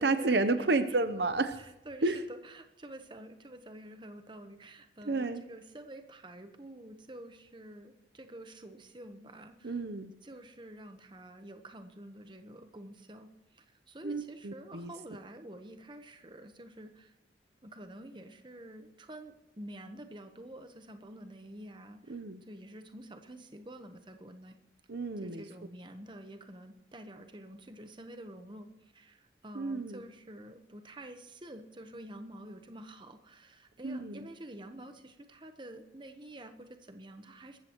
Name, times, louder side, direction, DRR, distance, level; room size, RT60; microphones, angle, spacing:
voice 1, 0.0-1.6 2.0-2.2 5.0-5.4 9.6-10.1 14.0-14.9 22.1-22.4 24.9-25.4 29.5-30.0 33.8-34.3, right 3 dB, 60° right, 10 dB, 0.8 m, -31 dB
voice 2, 1.6-9.8 10.2-17.1 17.6-24.6 25.2-37.6, right 1 dB, 25° right, 7 dB, 1.1 m, -48 dB
21.0 x 14.0 x 3.1 m, 0.91 s
head